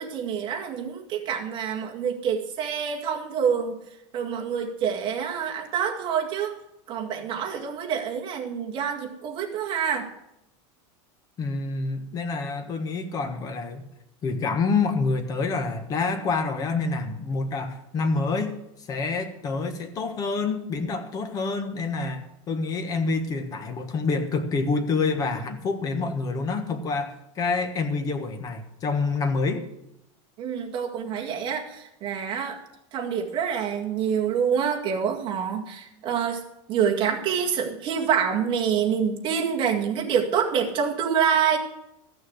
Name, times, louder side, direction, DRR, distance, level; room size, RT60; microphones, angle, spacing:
voice 1, 0.0-3.8 4.1-6.5 6.9-10.1 30.4-32.6 32.9-36.4 36.7-41.6, right 7 dB, 30° right, 0 dB, 1.9 m, -26 dB
voice 2, 11.4-13.8 14.2-18.5 18.9-29.7, left 4 dB, 25° left, 7 dB, 1.3 m, -27 dB
14.0 x 6.5 x 7.9 m, 0.85 s
supercardioid pair, 165°, 16 cm